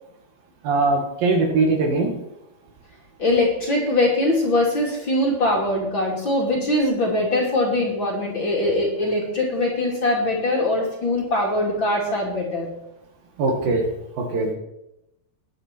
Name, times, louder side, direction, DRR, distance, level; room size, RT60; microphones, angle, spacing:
voice 1, 0.6-2.1 13.4-13.9 14.2-14.5, right 3 dB, 65° right, 2 dB, 3.4 m, -21 dB
voice 2, 3.2-12.7, left 1 dB, 35° left, -2 dB, 2.8 m, -22 dB
20.5 x 9.1 x 4.5 m, 0.87 s
omnidirectional pair, 4.6 m